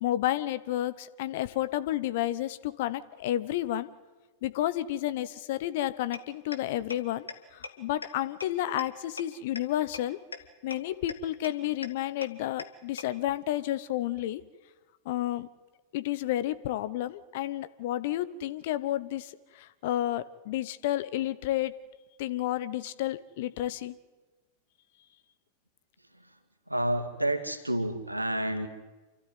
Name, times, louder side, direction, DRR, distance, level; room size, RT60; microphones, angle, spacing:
voice 1, 0.0-3.9 4.4-10.2 10.6-14.4 15.0-15.5 15.9-21.7 22.2-23.9, left 13 dB, 50° left, 14 dB, 1.0 m, -31 dB
sound 1, 6.1-6.2 6.5-6.6 6.9-7.0 7.3-7.4 7.6-7.7 8.0-8.1 8.4-8.5 8.8-8.9 9.2-9.3 9.6-9.7 9.9-10.0 10.3-10.4 10.7-10.8 11.1-11.2 11.4-11.5 11.8-11.9 12.2-12.3 12.6-12.7 13.0-13.1, left 4 dB, 80° left, 1.6 m, -37 dB
voice 2, 26.7-28.7, right 1 dB, 85° right, 7 dB, 2.1 m, -30 dB
28.5 x 13.0 x 9.5 m, 1.2 s
figure-of-eight pair, 90°, 0 cm